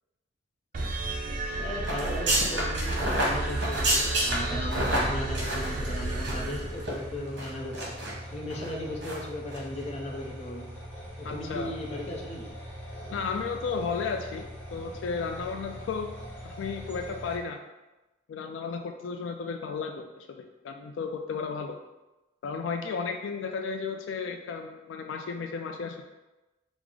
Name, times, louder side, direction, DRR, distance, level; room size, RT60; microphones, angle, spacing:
sound 1, 0.7-7.3, right 2 dB, 45° right, 0.5 m, -32 dB
voice 1, 1.6-8.0 8.3-10.7 11.2-12.5, left 1 dB, 35° left, 0 dB, 0.5 m, -36 dB
sound 2, 1.8-6.5 6.8-6.9 7.4-8.1 8.5-8.7 9.0-9.2 9.5-9.6, right 1 dB, 60° right, 1.0 m, -29 dB
sound 3, 4.4-17.4, equal, 10° left, 1.0 m, -42 dB
voice 2, 11.2-11.7 13.1-14.4 14.7-16.1 16.4-17.6 18.3-21.8 22.4-26.0, left 5 dB, 85° left, 5 dB, 0.3 m, -33 dB
4.7 x 2.0 x 3.7 m, 1.1 s
head